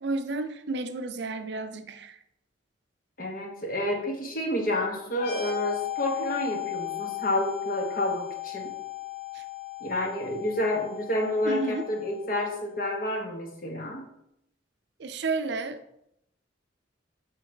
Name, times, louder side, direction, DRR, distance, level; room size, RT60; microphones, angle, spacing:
voice 1, 0.0-2.2 9.3-9.4 11.4-11.8 15.0-15.8, right 3 dB, 65° right, 9 dB, 0.5 m, -31 dB
voice 2, 3.2-8.7 9.8-14.0, left 1 dB, 50° left, 1 dB, 1.3 m, -29 dB
sound 1, 5.1-12.6, left 17 dB, 70° left, 1.9 m, -37 dB
7.1 x 4.0 x 4.5 m, 0.78 s
head